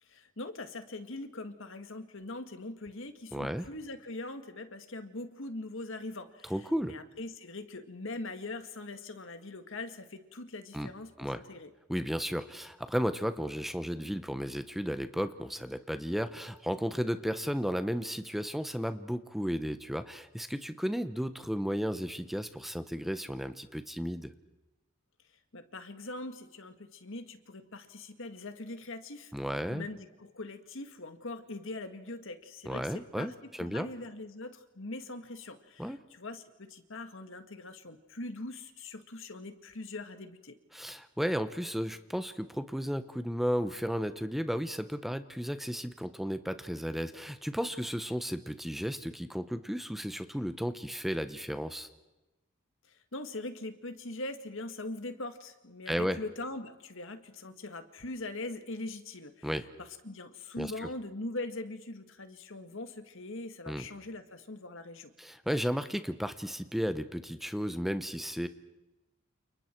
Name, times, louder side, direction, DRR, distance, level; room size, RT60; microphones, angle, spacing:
voice 1, 0.0-11.7 25.5-29.3 29.7-40.6 52.8-59.5 59.8-65.1, left 2 dB, 65° left, 8 dB, 1.9 m, -42 dB
voice 2, 3.3-3.7 6.4-6.9 10.7-10.9 11.2-11.4 11.9-24.3 29.3-29.9 32.7-33.9 35.8-36.0 40.7-51.9 55.9-56.2 59.4-59.6 60.6-60.9 63.7-63.9 65.2-68.5, equal, ahead, 10 dB, 0.9 m, -34 dB
29.5 x 29.0 x 4.6 m, 1.0 s
head